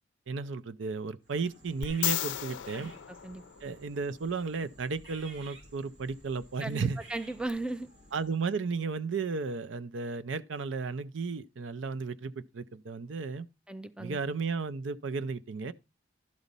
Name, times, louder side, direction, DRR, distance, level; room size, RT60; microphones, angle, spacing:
voice 1, 0.3-2.9 3.6-7.0 8.1-13.5 14.0-15.7, right 4 dB, 80° right, 0.5 m, -34 dB
sound 1, 1.2-8.5, right 2 dB, 60° right, 2.9 m, -54 dB
sound 2, 1.8-4.1 7.5-7.6, left 13 dB, 75° left, 0.4 m, -34 dB
voice 2, 6.6-7.9 13.7-14.2, right 2 dB, 5° right, 0.4 m, -36 dB
12.0 x 4.1 x 5.2 m
head